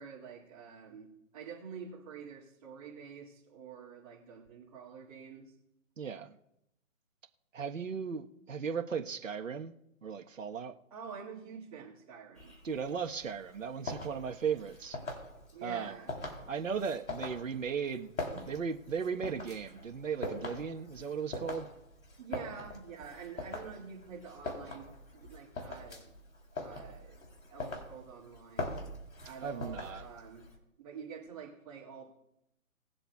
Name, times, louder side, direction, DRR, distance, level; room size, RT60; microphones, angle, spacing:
voice 1, 0.0-5.5 10.9-12.5 15.5-16.1 18.3-18.4 22.2-26.1 26.5-27.2 27.5-28.7 29.2-30.5 30.8-32.1, right 6 dB, 25° right, -9 dB, 2.4 m, -47 dB
voice 2, 6.0-6.3 7.5-9.7 10.0-10.7 12.6-15.0 15.6-15.9 16.5-18.1 18.5-21.7 29.4-30.1, right 6 dB, 65° right, 5 dB, 1.4 m, -36 dB
sound 1, 12.4-30.6, left 2 dB, 85° left, 3.6 m, -43 dB
21.0 x 7.8 x 2.4 m, 0.84 s
hypercardioid pair, 165°, 41 cm